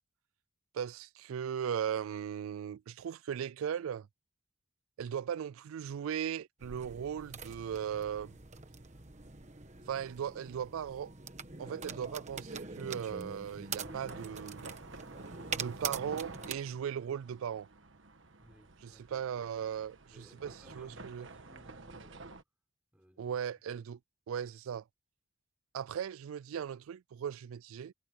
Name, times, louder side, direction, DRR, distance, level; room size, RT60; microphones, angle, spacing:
voice 1, 0.7-4.1 5.0-8.3 9.9-11.1 11.6-14.7 15.6-17.7 18.8-21.3 23.2-24.0 24.3-24.8 25.7-27.9, right 8 dB, 80° right, 0.3 m, -38 dB
sound 1, 6.6-16.5, right 5 dB, 35° right, 1.4 m, -44 dB
sound 2, 13.6-22.4, right 3 dB, 65° right, 1.4 m, -50 dB
voice 2, 18.4-19.5 20.1-22.4 22.9-23.4, equal, 5° right, 6.0 m, -61 dB
head